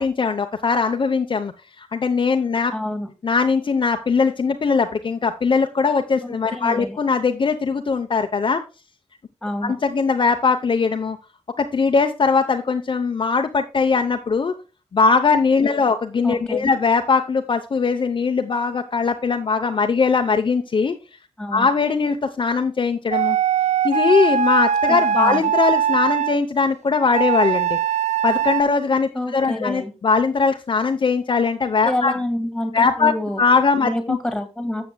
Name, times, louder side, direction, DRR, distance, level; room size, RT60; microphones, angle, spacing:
voice 1, 0.0-1.5 1.8-2.7 3.2-8.6 9.6-11.2 11.6-14.5 14.9-21.0 21.5-23.4 23.8-27.8 28.2-32.1 32.7-33.1 33.4-34.2, left 4 dB, 45° left, 5 dB, 0.8 m, -20 dB
voice 2, 2.7-3.1 6.2-7.0 9.4-9.7 16.2-16.8 21.4-21.7 24.9-25.5 29.1-29.9 31.8-33.4 33.8-34.8, left 1 dB, 5° left, 7 dB, 1.9 m, -27 dB
sound 1, 23.1-26.3 27.1-28.6, right 8 dB, 85° right, 0.5 m, -21 dB
13.0 x 7.7 x 2.2 m, 0.31 s
wide cardioid pair, 175°, 12 cm